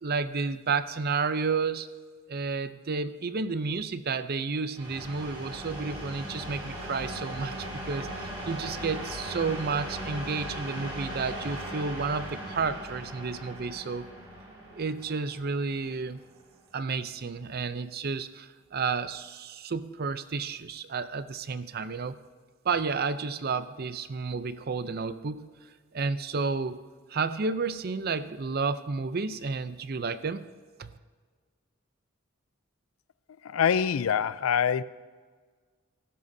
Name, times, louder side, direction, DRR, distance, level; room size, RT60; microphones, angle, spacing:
voice 1, 0.0-1.9 2.3-7.5 7.9-14.1 14.7-16.2 16.7-22.2 22.6-25.5 25.9-26.8 27.1-30.4 30.8-30.9, right 4 dB, 50° right, 0.5 m, -31 dB
sound 1, 4.7-16.4, right 1 dB, 25° right, 4.2 m, -38 dB
voice 2, 33.4-34.8, left 7 dB, 90° left, 0.4 m, -25 dB
16.0 x 14.0 x 2.7 m
head